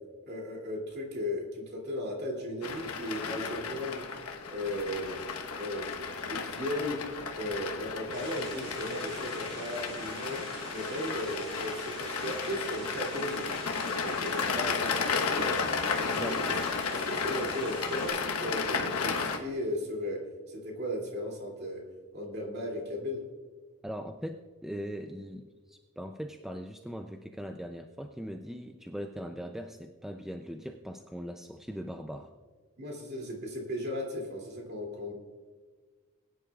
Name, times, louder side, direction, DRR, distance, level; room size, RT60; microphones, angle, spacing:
voice 1, 0.2-4.0 4.5-5.2 5.5-6.0 6.3-7.0 7.3-10.4 10.7-13.5 13.9-15.6 15.9-16.5 16.9-20.2 20.5-21.8 22.1-23.2 32.8-35.1, equal, 45° right, -1 dB, 2.6 m, -36 dB
sound 1, 2.6-19.4, left 5 dB, 85° left, 1.1 m, -33 dB
sound 2, 8.1-18.1, right 1 dB, 25° right, 3.5 m, -46 dB
voice 2, 23.8-32.3, equal, ahead, 5 dB, 0.3 m, -40 dB
21.0 x 10.0 x 2.4 m, 1.5 s
head